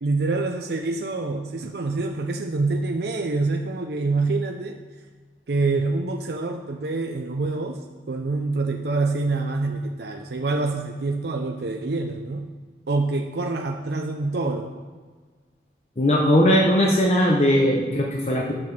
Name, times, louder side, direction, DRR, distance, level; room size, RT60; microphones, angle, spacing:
voice 1, 0.0-4.8 5.5-12.5 12.9-14.8, right 3 dB, 65° right, 3 dB, 0.6 m, -26 dB
voice 2, 16.0-18.5, equal, 40° left, 0 dB, 0.8 m, -19 dB
10.5 x 5.9 x 6.0 m, 1.5 s
head